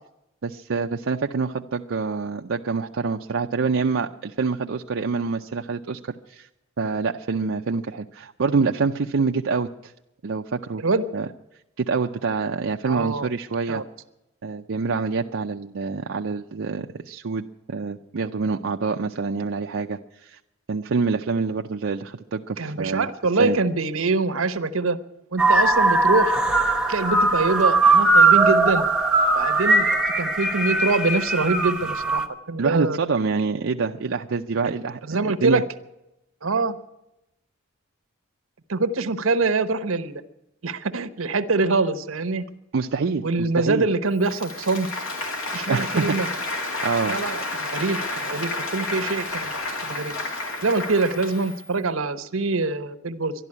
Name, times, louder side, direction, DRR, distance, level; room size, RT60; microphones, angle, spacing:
voice 1, 0.4-6.5 6.8-9.9 10.2-10.8 11.1-11.3 11.8-13.8 14.4-20.4 20.7-23.1 23.4-23.6 32.6-35.0 35.2-35.6 42.7-43.9 45.7-46.4 46.8-47.2, right 4 dB, 65° right, 3 dB, 0.5 m, -26 dB
voice 2, 12.8-13.3 13.7-13.8 22.6-25.0 25.3-26.4 26.9-28.8 29.3-33.0 35.1-35.6 36.4-36.8 38.7-40.2 40.6-42.4 43.2-44.9 45.5-46.3 47.1-49.5 49.8-50.2 50.6-53.3, right 3 dB, 80° right, 12 dB, 1.0 m, -24 dB
sound 1, 25.4-32.3, right 3 dB, 5° right, 1.0 m, -19 dB
Applause, 44.2-51.6, left 2 dB, 80° left, 2.5 m, -30 dB
12.5 x 11.5 x 9.7 m, 0.89 s
head